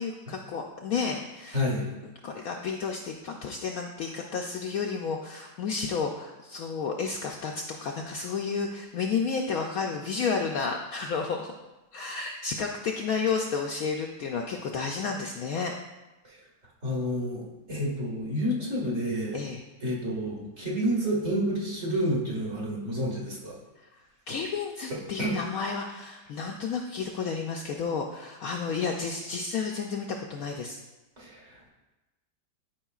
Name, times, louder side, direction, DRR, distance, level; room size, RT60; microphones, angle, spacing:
voice 1, 0.0-1.6 2.2-11.5 11.9-15.7 19.3-19.6 24.3-30.8, left 5 dB, 70° left, 1 dB, 0.8 m, -31 dB
voice 2, 1.5-1.9 16.2-16.4 16.8-19.4 19.8-23.6 25.2-25.4 31.2-31.7, equal, 40° right, -4 dB, 2.0 m, -29 dB
11.5 x 5.1 x 2.4 m, 1.1 s
omnidirectional pair, 1.9 m